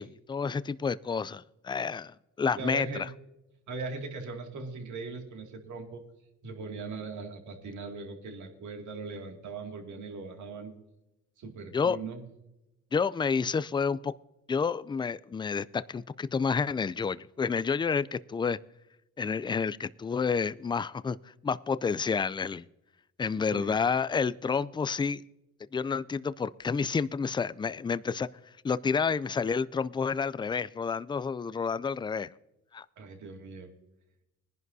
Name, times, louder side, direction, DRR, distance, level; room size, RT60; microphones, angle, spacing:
voice 1, 0.0-3.1 11.7-12.0 12.9-14.1 14.5-18.6 19.2-21.2 21.4-22.7 23.2-25.2 25.7-28.3 28.6-32.3 32.7-32.9, left 5 dB, 15° left, 17 dB, 0.3 m, -29 dB
voice 2, 2.6-3.1 3.7-6.0 6.4-10.7 11.4-12.2 23.5-23.8 33.0-33.7, right 4 dB, 75° right, 3 dB, 2.3 m, -39 dB
21.0 x 11.0 x 2.7 m, 0.92 s
cardioid pair, 90°, 30 cm